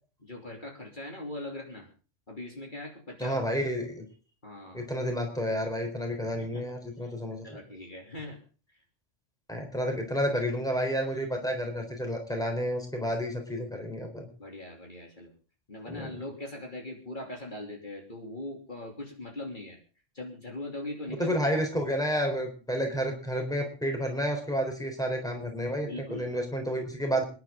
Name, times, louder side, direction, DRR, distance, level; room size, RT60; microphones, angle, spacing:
voice 1, 0.2-1.9 2.3-3.4 4.4-4.9 6.4-6.6 7.0-7.1 7.4-8.4 8.7-8.8 14.4-15.4 15.7-19.8 20.1-21.4 25.8-26.3, left 1 dB, 40° left, 0 dB, 3.2 m, -40 dB
voice 2, 3.2-4.1 4.7-7.6 9.5-14.3 15.9-16.1 21.2-27.2, equal, 5° left, 3 dB, 3.9 m, -30 dB
26.0 x 11.0 x 3.8 m, 0.38 s
omnidirectional pair, 1.2 m